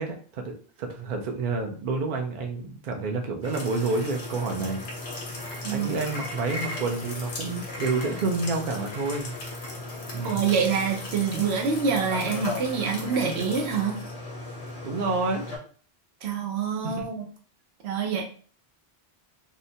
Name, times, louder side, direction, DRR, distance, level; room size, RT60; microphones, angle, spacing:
voice 1, 0.0-4.8 5.7-9.4 10.1-10.4 14.8-15.4 16.8-17.0, right 3 dB, 60° right, 3 dB, 0.6 m, -29 dB
sound 1, 3.4-15.6, left 2 dB, 90° left, 1.0 m, -36 dB
voice 2, 10.2-14.0 16.2-17.2 17.8-18.2, right 6 dB, 90° right, 3 dB, 0.9 m, -26 dB
2.7 x 2.1 x 2.6 m, 0.43 s
omnidirectional pair, 1.0 m